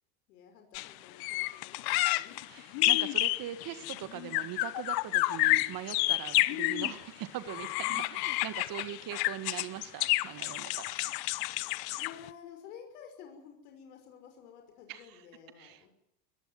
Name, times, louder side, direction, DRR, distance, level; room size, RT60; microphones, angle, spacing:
voice 1, 0.3-2.6 6.3-7.0 8.6-8.9 11.9-15.9, left 8 dB, 70° left, 4 dB, 6.1 m, -52 dB
sound 1, 0.7-0.9 1.2-7.0 7.5-12.3, left 21 dB, 50° left, 1.0 m, -30 dB
voice 2, 1.9-2.2 2.5-11.1 14.9-15.2 15.6-15.8, right 12 dB, 45° right, 11 dB, 2.0 m, -41 dB
23.5 x 17.0 x 9.7 m, 0.82 s
hypercardioid pair, 105°, 48 cm